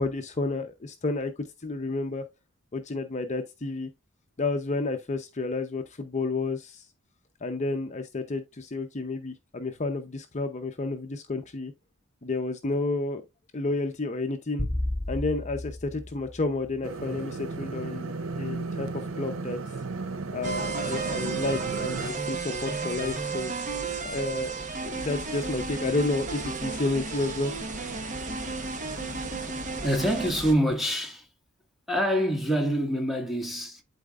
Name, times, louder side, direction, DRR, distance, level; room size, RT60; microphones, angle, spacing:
voice 1, 0.0-2.2 2.7-3.9 4.4-6.8 7.4-11.7 12.2-13.2 13.5-14.7 15.1-18.1 18.4-18.9 19.2-19.6 20.3-23.5 24.0-24.5 24.8-27.5 29.0-29.4, left 3 dB, 35° left, 0.7 m, -31 dB
sound 1, 14.6-17.1, left 1 dB, 15° left, 1.6 m, -33 dB
sound 2, 16.8-22.1, right 3 dB, 85° right, 0.6 m, -34 dB
sound 3, 20.4-30.5, right 4 dB, 40° right, 1.2 m, -33 dB
voice 2, 29.8-31.3 31.9-33.8, equal, ahead, 1.7 m, -26 dB
11.5 x 4.2 x 2.4 m
head